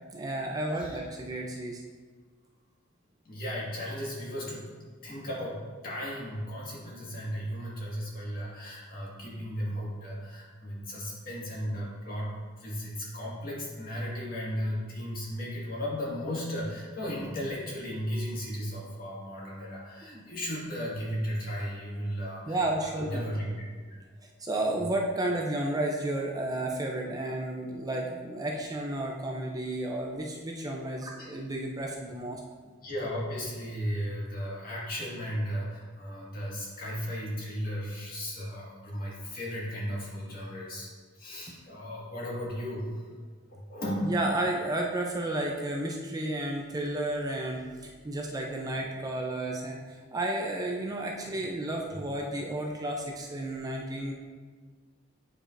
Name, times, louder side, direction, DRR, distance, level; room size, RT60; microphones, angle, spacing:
voice 1, 0.1-1.8 20.0-20.2 22.5-23.2 24.4-32.4 44.0-54.1, right 1 dB, 20° right, 0 dB, 0.5 m, -32 dB
voice 2, 3.3-4.7 5.0-12.3 12.6-23.8 31.2-31.3 32.8-43.1 43.5-44.1 51.9-52.0, equal, 50° left, -5 dB, 1.8 m, -35 dB
8.6 x 4.8 x 2.6 m, 1.4 s
head